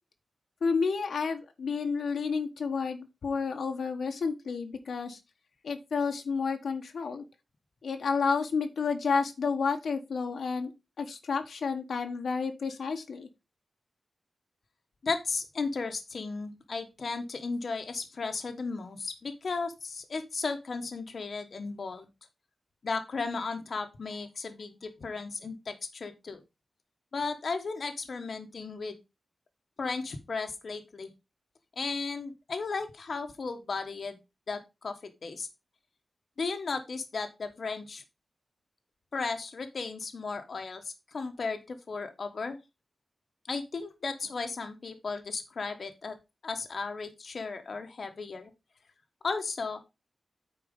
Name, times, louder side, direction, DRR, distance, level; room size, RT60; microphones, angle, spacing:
voice 1, 0.6-5.2 5.6-7.2 7.8-10.7 11.0-13.3, left 5 dB, 85° left, 5 dB, 1.2 m, -30 dB
voice 2, 15.0-22.1 22.8-26.4 27.1-29.0 29.8-31.1 31.8-34.2 34.5-35.5 36.4-38.0 39.1-42.6 43.5-46.2 46.4-48.5 49.2-49.8, left 4 dB, 60° left, 6 dB, 1.2 m, -35 dB
9.0 x 4.5 x 5.2 m, 0.25 s
wide cardioid pair, 115°, 0 cm